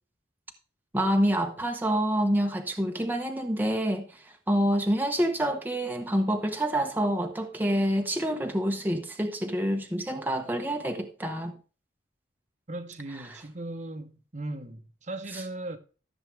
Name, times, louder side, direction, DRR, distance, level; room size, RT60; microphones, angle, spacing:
voice 1, 0.9-11.6 13.3-13.4, equal, 10° right, 0.9 m, -27 dB
voice 2, 12.7-15.8, right 2 dB, 40° right, 1.0 m, -38 dB
14.0 x 7.3 x 3.3 m
head